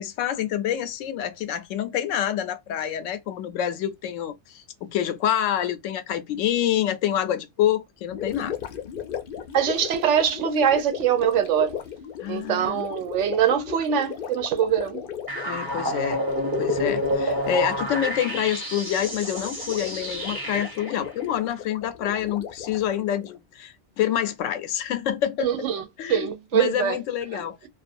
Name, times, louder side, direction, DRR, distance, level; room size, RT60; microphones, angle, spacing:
voice 1, 0.0-8.5 12.2-12.8 15.4-16.2 16.6-25.7 26.0-27.6, left 10 dB, 90° left, 0.9 m, -27 dB
Gurgling, 8.1-23.4, left 9 dB, 60° left, 0.6 m, -37 dB
voice 2, 9.5-11.8 12.3-15.0 25.4-25.8 26.1-27.0 27.3-27.7, right 9 dB, 80° right, 0.9 m, -23 dB
sound 1, 15.3-21.0, left 1 dB, 20° right, 0.9 m, -29 dB
2.4 x 2.3 x 2.5 m
omnidirectional pair, 1.2 m